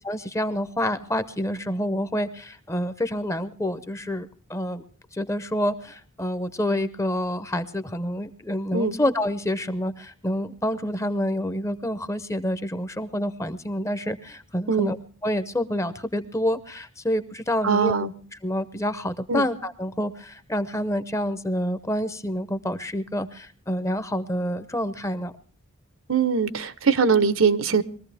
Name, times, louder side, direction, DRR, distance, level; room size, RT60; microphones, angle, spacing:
voice 1, 0.0-4.8 5.1-15.0 15.2-17.9 18.4-25.3, equal, 15° left, 0.7 m, -28 dB
voice 2, 17.6-18.1 19.3-19.4 26.1-27.8, right 5 dB, 75° right, 0.9 m, -21 dB
22.0 x 14.5 x 3.4 m
head